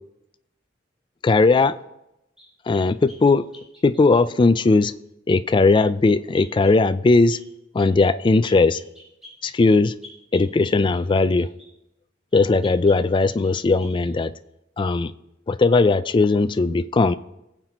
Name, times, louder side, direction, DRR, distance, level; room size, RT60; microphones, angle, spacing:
voice 1, 1.2-1.8 2.7-3.5 3.8-4.9 5.3-7.4 7.7-8.8 9.4-9.9 10.3-11.5 12.3-14.3 14.8-15.1 15.5-17.1, left 3 dB, 25° left, 13 dB, 0.3 m, -18 dB
sound 1, 2.4-4.3 6.3-6.8 7.3-7.5 7.8-8.1 8.5-11.7 12.3-13.5 13.8-14.1, left 1 dB, 5° right, 4.2 m, -47 dB
20.0 x 7.5 x 2.9 m, 0.89 s
head